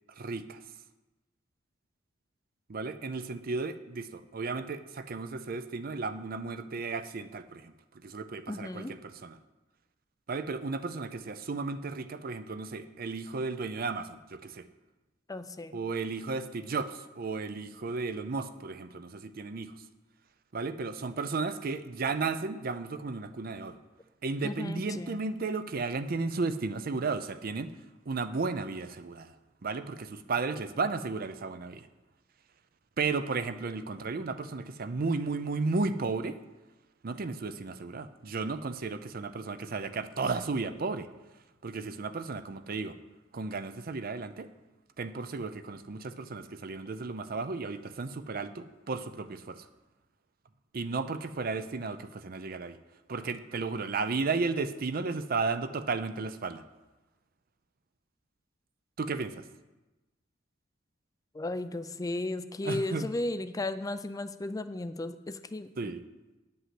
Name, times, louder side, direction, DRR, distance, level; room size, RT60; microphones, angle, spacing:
voice 1, 0.2-0.6 2.7-9.4 10.3-14.7 15.7-19.9 20.5-23.8 24.2-27.7 28.1-29.4 29.6-31.9 33.0-36.4 37.0-41.1 41.6-43.0 43.3-44.5 45.0-49.7 50.7-52.8 53.1-56.6 59.0-59.5 62.6-63.1 65.8-66.0, right 4 dB, 50° right, 11 dB, 0.5 m, -34 dB
voice 2, 8.5-8.9 15.3-15.8 24.4-25.2 61.3-65.9, left 2 dB, 20° left, 11 dB, 0.4 m, -35 dB
10.0 x 5.5 x 7.6 m, 1.1 s
head